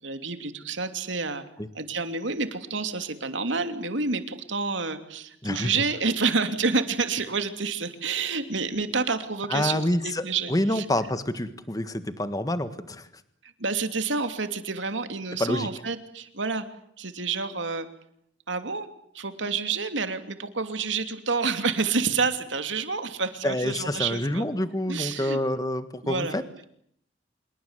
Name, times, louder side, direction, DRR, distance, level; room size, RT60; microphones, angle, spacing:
voice 1, 0.0-1.4 1.7-10.8 13.6-16.6 17.0-17.9 18.5-18.9 19.1-24.4 24.9-25.4 26.0-26.4, right 4 dB, 85° right, 8 dB, 2.9 m, -29 dB
voice 2, 9.5-13.1 15.4-15.7 23.4-26.4, left 1 dB, 20° left, 11 dB, 1.6 m, -27 dB
27.0 x 22.0 x 8.2 m, 0.68 s
head